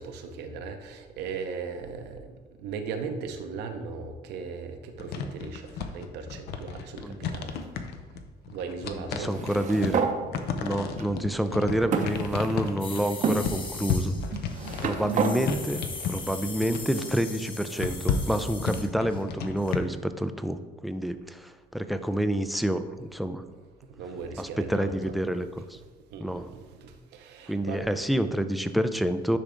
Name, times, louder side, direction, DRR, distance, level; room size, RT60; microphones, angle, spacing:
voice 1, 0.0-7.7 8.5-9.3 14.2-15.0 23.8-25.2 26.1-27.9, right 5 dB, 80° right, 5 dB, 0.8 m, -38 dB
sound 1, 5.0-19.8, left 6 dB, 70° left, 0.6 m, -33 dB
voice 2, 8.9-10.0 10.6-14.1 14.8-23.4 24.4-25.8 26.2-26.5 27.5-29.4, right 1 dB, ahead, 9 dB, 0.4 m, -28 dB
sound 2, 9.3-10.2 11.0-11.1 11.9-12.7 13.2-13.4 14.3-15.4, right 6 dB, 50° right, 0.7 m, -28 dB
sound 3, 12.8-19.3 19.6-19.7, left 3 dB, 30° left, 0.9 m, -40 dB
9.9 x 3.4 x 3.8 m, 1.3 s
cardioid pair, 110°, 17 cm